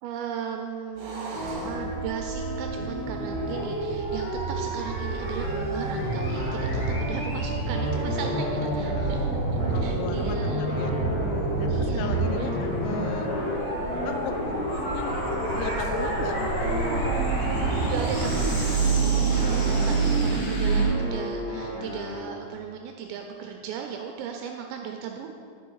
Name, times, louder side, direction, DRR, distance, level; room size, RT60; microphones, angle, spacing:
voice 1, 0.0-9.3 9.8-10.8 11.7-12.5 17.8-25.3, right 7 dB, 85° right, 3 dB, 2.6 m, -37 dB
sound 1, 1.0-20.0, right 3 dB, 70° right, 2.0 m, -35 dB
sound 2, 1.3-20.8, right 3 dB, 65° left, 4.5 m, -28 dB
sound 3, 5.8-7.3 7.7-11.6 12.0-15.9 16.3-20.3 20.7-22.5, left 1 dB, 45° left, 1.9 m, -36 dB
voice 2, 9.0-11.0 11.6-13.3 14.0-15.1 15.5-16.4 16.7-17.0 19.3-20.6, left 6 dB, 85° left, 6 dB, 3.0 m, -37 dB
11.0 x 5.6 x 4.6 m, 2.3 s
omnidirectional pair, 5.5 m